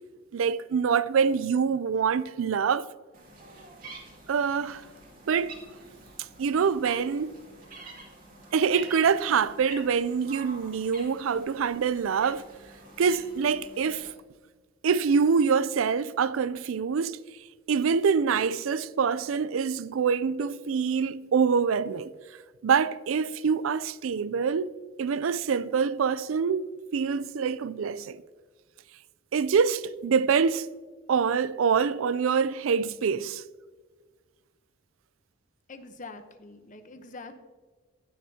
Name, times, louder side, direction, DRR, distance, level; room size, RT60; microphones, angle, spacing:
voice 1, 0.3-2.9 4.3-4.8 5.3-5.6 6.4-7.4 8.5-12.4 13.0-14.1 14.8-17.2 17.7-22.1 22.6-24.7 25.0-28.2 29.3-30.7 31.1-33.4, right 6 dB, 80° right, 0.4 m, -25 dB
sound 1, 3.1-14.1, right 2 dB, 45° right, 2.1 m, -47 dB
voice 2, 35.7-37.3, left 3 dB, 40° left, 0.8 m, -44 dB
16.5 x 6.5 x 2.8 m
head